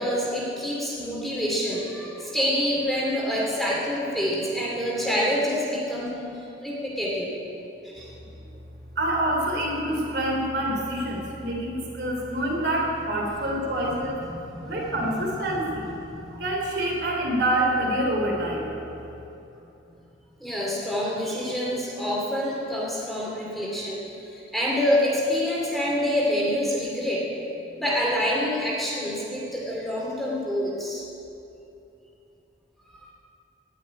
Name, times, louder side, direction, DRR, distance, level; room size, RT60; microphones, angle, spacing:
voice 1, 0.0-7.3 7.8-8.1 14.3-15.2 16.1-16.4 20.4-27.3 27.8-31.0, equal, ahead, -5 dB, 2.4 m, -27 dB
voice 2, 9.0-11.7 12.0-14.1 14.7-15.6 16.4-18.6, right 1 dB, 60° right, -2 dB, 3.4 m, -26 dB
18.0 x 6.2 x 9.5 m, 2.9 s
head